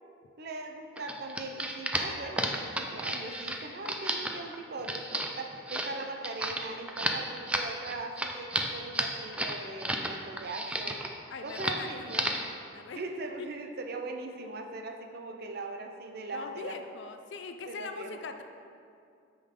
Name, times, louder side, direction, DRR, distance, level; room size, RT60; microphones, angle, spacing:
voice 1, 0.4-11.1 11.4-12.3 12.9-16.8 17.6-18.2, right 2 dB, 50° right, 4 dB, 0.6 m, -40 dB
sound 1, 1.0-10.1 10.4-11.1 11.5-11.8 12.1-12.5, right 1 dB, 5° right, 0.4 m, -32 dB
voice 2, 11.3-12.3 12.7-13.0 13.4-13.5 16.3-18.4, left 4 dB, 60° left, 7 dB, 0.5 m, -41 dB
8.4 x 5.5 x 3.7 m, 2.4 s
head